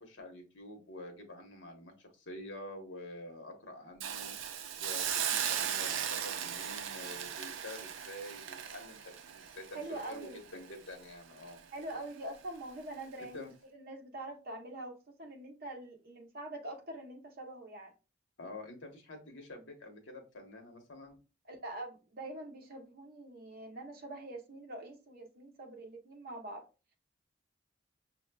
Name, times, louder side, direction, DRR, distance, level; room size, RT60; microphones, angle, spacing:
voice 1, 0.0-4.3 4.8-11.7 13.2-13.5 18.4-21.2, left 1 dB, 70° left, 1.0 m, -48 dB
Hiss, 4.0-11.0 11.4-11.6, right 9 dB, 75° right, 0.4 m, -37 dB
voice 2, 9.7-10.4 11.7-17.9 21.5-26.6, right 2 dB, 50° right, 0.8 m, -44 dB
5.8 x 2.3 x 2.2 m
head